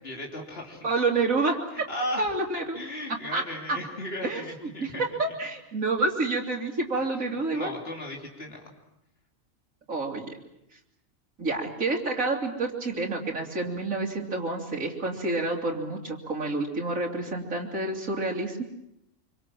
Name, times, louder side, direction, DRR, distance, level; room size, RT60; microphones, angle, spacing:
voice 1, 0.0-0.9 1.7-2.2 2.7-5.2 6.9-8.6, left 1 dB, 45° left, 0 dB, 3.6 m, -36 dB
voice 2, 0.8-1.6 2.2-2.8 3.3-3.4 3.7-3.8 4.2-4.4 4.8-4.9 5.2-7.7 9.9-10.4 11.4-18.6, right 3 dB, 90° right, -3 dB, 3.2 m, -28 dB
25.0 x 25.0 x 7.6 m, 0.83 s
omnidirectional pair, 1.4 m